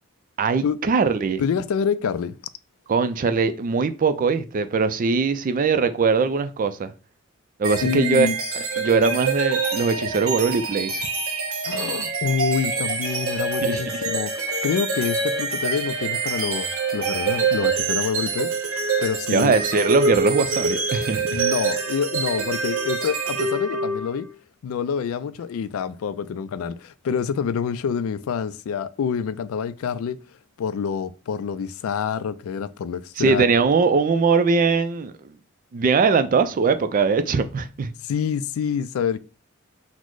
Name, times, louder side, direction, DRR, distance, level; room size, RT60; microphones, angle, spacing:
voice 1, 0.4-1.4 2.9-6.9 7.6-8.3 8.8-11.1 13.6-14.0 19.3-21.4 33.2-35.3 35.7-37.9, right 4 dB, 40° right, 0.4 m, -21 dB
voice 2, 1.4-2.4 7.8-8.4 11.6-14.3 14.6-18.5 19.0-19.6 21.3-24.3 24.6-30.2 30.6-33.5 38.0-39.2, left 7 dB, 80° left, 0.3 m, -27 dB
sound 1, 7.6-24.3, right 4 dB, 75° right, 0.8 m, -26 dB
sound 2, 12.8-17.8, left 1 dB, 5° right, 0.7 m, -39 dB
4.1 x 2.1 x 4.5 m
head